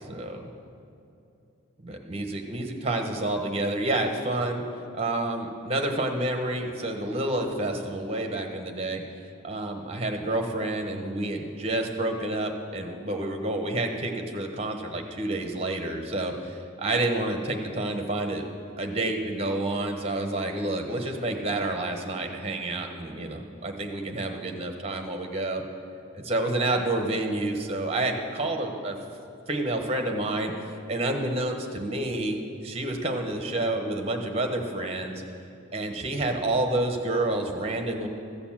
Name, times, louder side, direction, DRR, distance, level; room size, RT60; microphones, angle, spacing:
voice 1, 0.1-0.5 1.8-4.6 5.0-9.0 9.4-18.4 18.8-25.6 26.1-29.0 29.5-30.5 30.9-32.4 32.6-35.2 35.7-38.1, right 2 dB, 30° right, 4 dB, 1.0 m, -29 dB
14.5 x 7.0 x 7.3 m, 2.6 s
head